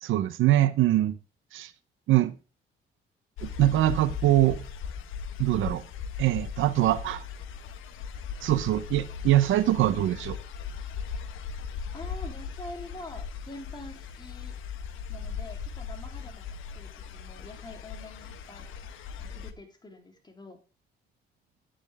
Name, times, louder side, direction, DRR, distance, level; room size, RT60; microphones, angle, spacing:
voice 1, 0.0-1.1 1.5-1.7 2.1-2.3 3.4-4.6 5.4-5.8 6.2-7.2 8.4-10.4, right 14 dB, 80° right, 0.8 m, -23 dB
sound 1, 3.4-19.5, left 6 dB, 90° left, 1.3 m, -38 dB
voice 2, 11.9-14.6 15.1-16.4 16.7-18.7 19.2-20.6, left 2 dB, 20° left, 3.4 m, -45 dB
10.5 x 8.8 x 3.5 m
cardioid pair, 90°, 20 cm